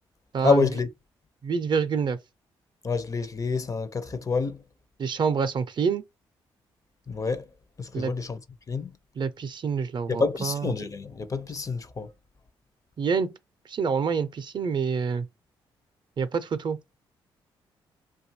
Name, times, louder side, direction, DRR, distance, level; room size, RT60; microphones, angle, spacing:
voice 1, 0.4-0.9 2.8-4.6 7.1-7.4 7.8-8.4 8.7-8.9 10.1-12.1, left 4 dB, 35° left, 0.5 m, -27 dB
voice 2, 1.4-2.2 5.0-6.0 7.9-8.1 9.2-10.7 13.0-13.3 13.7-15.3 16.2-16.8, right 6 dB, 50° right, 0.4 m, -27 dB
2.6 x 2.3 x 2.6 m
supercardioid pair, 55°, 10 cm